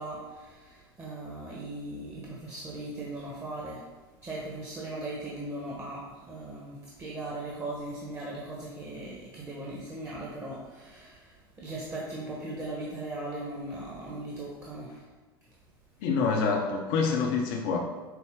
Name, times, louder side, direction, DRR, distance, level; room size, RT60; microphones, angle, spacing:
voice 1, 0.0-3.8 4.2-15.0, right 2 dB, 25° right, -5 dB, 1.0 m, -38 dB
voice 2, 16.0-17.8, left 5 dB, 60° left, 0 dB, 0.7 m, -26 dB
5.9 x 2.0 x 3.6 m, 1.3 s
hypercardioid pair, 80°, 13 cm